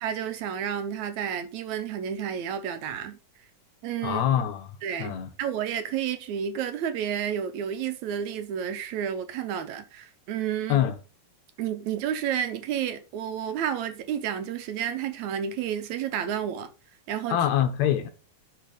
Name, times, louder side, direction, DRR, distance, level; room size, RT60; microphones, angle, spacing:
voice 1, 0.0-3.2 3.8-4.2 4.8-10.8 11.6-16.7 17.1-17.4, right 9 dB, 70° right, 2.1 m, -31 dB
voice 2, 4.0-5.3 10.7-11.0 17.3-18.1, left 10 dB, 70° left, 2.1 m, -25 dB
10.5 x 4.1 x 5.1 m
omnidirectional pair, 3.6 m